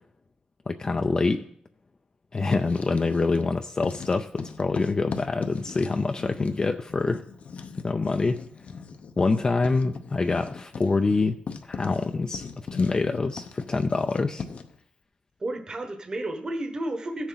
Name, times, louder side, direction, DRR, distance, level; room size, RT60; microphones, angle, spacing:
voice 1, 0.7-1.5 2.3-7.2 7.8-8.4 9.2-14.4, left 3 dB, 30° left, 6 dB, 0.4 m, -26 dB
Writing, 2.4-3.5 3.8-14.8, left 5 dB, 60° left, 0.7 m, -40 dB
voice 2, 15.4-17.3, right 1 dB, 30° right, 5 dB, 1.2 m, -32 dB
16.0 x 7.1 x 3.9 m, 0.66 s
wide cardioid pair, 130°, 3 cm